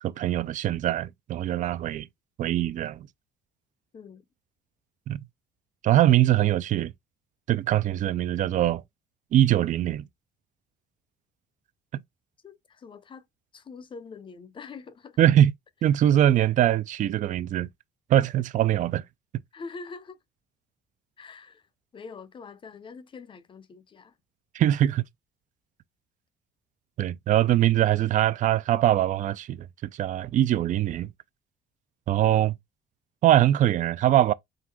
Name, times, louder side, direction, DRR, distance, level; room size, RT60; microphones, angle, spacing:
voice 1, 0.0-2.1 2.4-3.1 5.1-5.2 5.8-6.9 7.5-8.8 9.3-10.1 15.2-15.5 15.8-17.7 18.1-19.0 19.3-19.4 24.5-25.0 27.0-31.1 32.1-32.6 33.2-34.3, right 12 dB, 50° right, 0.4 m, -22 dB
voice 2, 12.4-13.3 13.5-15.2 19.5-20.2 21.2-21.7 21.9-24.2, left 4 dB, 30° left, 0.6 m, -44 dB
3.8 x 2.5 x 4.4 m
cardioid pair, 110°, 17 cm